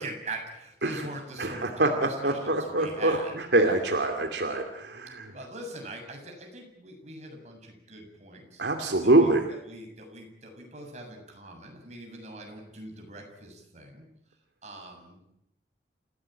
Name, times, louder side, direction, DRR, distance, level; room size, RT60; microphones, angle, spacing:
voice 1, 0.0-3.3 4.1-4.2 5.3-8.7 9.0-14.1 14.6-15.4, right 2 dB, 40° right, 3 dB, 7.3 m, -42 dB
voice 2, 1.4-5.3 8.6-9.4, right 2 dB, 75° right, 4 dB, 2.6 m, -25 dB
28.5 x 17.0 x 9.0 m, 0.80 s
head